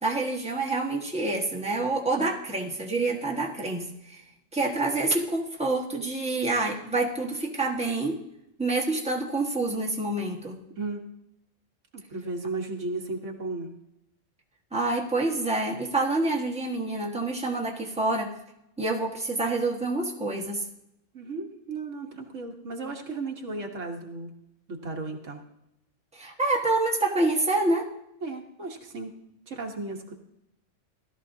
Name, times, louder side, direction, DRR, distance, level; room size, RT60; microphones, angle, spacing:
voice 1, 0.0-4.2 4.5-8.2 8.6-10.6 14.7-18.3 18.8-20.6 26.1-27.9, right 2 dB, 5° right, -1 dB, 1.4 m, -27 dB
voice 2, 11.9-13.7 21.1-24.3 24.7-25.4 28.2-29.1 29.5-30.1, right 3 dB, 80° right, 2 dB, 1.7 m, -35 dB
17.0 x 13.0 x 2.7 m, 0.84 s
omnidirectional pair, 1.3 m